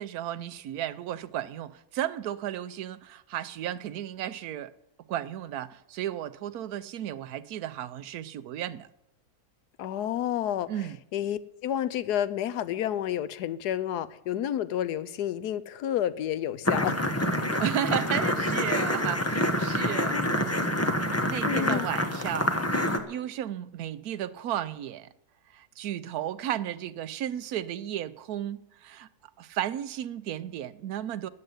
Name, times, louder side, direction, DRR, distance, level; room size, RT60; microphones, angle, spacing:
voice 1, 0.0-4.7 5.1-8.9 10.7-11.0 17.6-20.7 21.1-22.6 22.9-25.1 25.5-29.1 29.4-31.3, right 11 dB, 75° right, 1.2 m, -34 dB
voice 2, 9.8-10.7 11.1-17.0 20.1-20.3 21.4-21.9, left 11 dB, 90° left, 1.3 m, -30 dB
sound 1, 16.6-23.0, left 1 dB, 10° left, 0.8 m, -27 dB
13.0 x 7.8 x 9.5 m
omnidirectional pair, 1.7 m